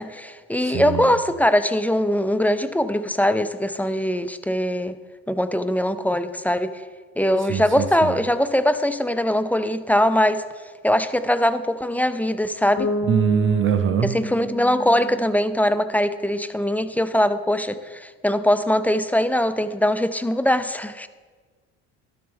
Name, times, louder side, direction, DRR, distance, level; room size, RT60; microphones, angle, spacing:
voice 1, 0.0-5.0 5.3-6.8 7.2-10.4 10.8-12.9 14.0-21.1, left 1 dB, 5° left, 11 dB, 0.3 m, -21 dB
voice 2, 0.6-1.1 7.5-8.2 13.1-14.1, right 8 dB, 35° right, 9 dB, 0.6 m, -23 dB
Bass guitar, 12.8-16.6, equal, 35° left, 1.9 m, -31 dB
12.0 x 6.8 x 3.5 m, 1.5 s
supercardioid pair, 90°, 35 cm